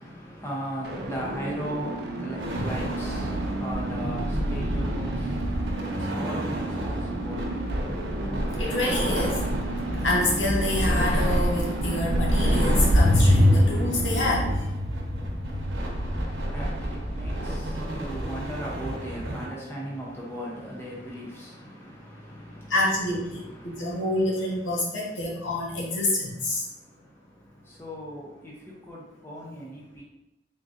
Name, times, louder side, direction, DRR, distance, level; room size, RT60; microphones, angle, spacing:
voice 1, 0.0-8.6 15.3-22.8 23.3-30.0, equal, 10° left, -4 dB, 0.6 m, -39 dB
sound 1, 0.8-14.6, right 2 dB, 55° right, 0.5 m, -34 dB
sound 2, 2.4-19.5, equal, 80° right, 1.0 m, -26 dB
voice 2, 8.6-9.4 10.0-14.7 22.7-26.6, left 2 dB, 80° left, -3 dB, 1.0 m, -27 dB
3.7 x 3.7 x 2.5 m, 0.95 s
head